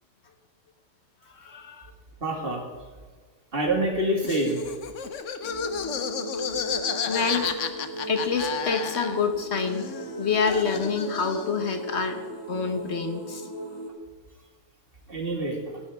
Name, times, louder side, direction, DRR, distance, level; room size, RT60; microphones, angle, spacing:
voice 1, 1.3-1.9 6.3-6.4 7.1-7.5 8.1-9.9 10.2-12.2 12.5-13.5, left 5 dB, 60° left, 6 dB, 1.3 m, -27 dB
voice 2, 2.2-2.6 3.5-4.6 15.1-15.8, right 1 dB, 50° right, 0 dB, 2.1 m, -26 dB
Laughter, 4.2-9.4 9.7-11.6, left 7 dB, 80° left, 1.1 m, -32 dB
sound 1, 5.4-13.9, equal, 20° left, 1.5 m, -37 dB
16.5 x 10.5 x 3.5 m, 1.4 s
omnidirectional pair, 1.3 m